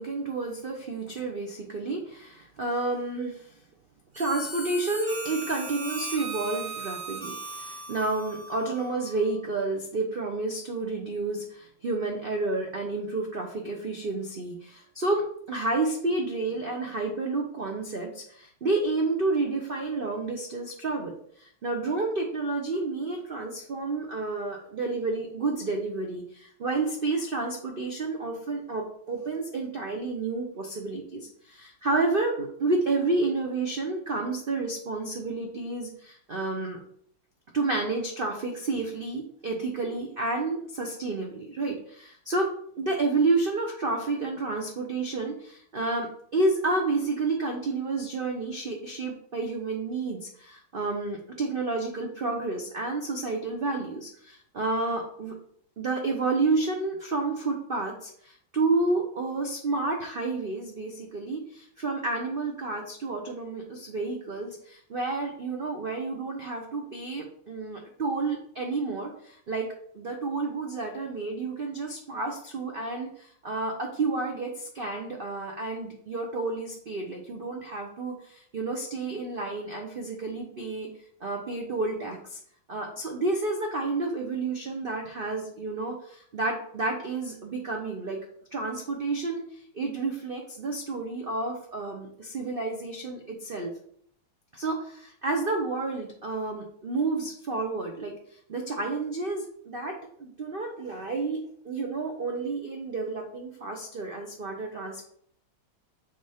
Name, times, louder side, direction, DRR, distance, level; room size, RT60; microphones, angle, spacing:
voice 1, 0.0-3.5 4.2-36.8 37.5-42.5 42.8-55.3 55.8-69.7 69.9-80.9 81.2-82.4 82.7-88.2 88.5-93.7 94.5-98.1 98.5-105.0, right 3 dB, 75° right, 1 dB, 0.5 m, -30 dB
Harmonica, 4.1-9.3, right 3 dB, 30° right, 1.3 m, -38 dB
7.0 x 4.1 x 3.5 m, 0.63 s
omnidirectional pair, 2.2 m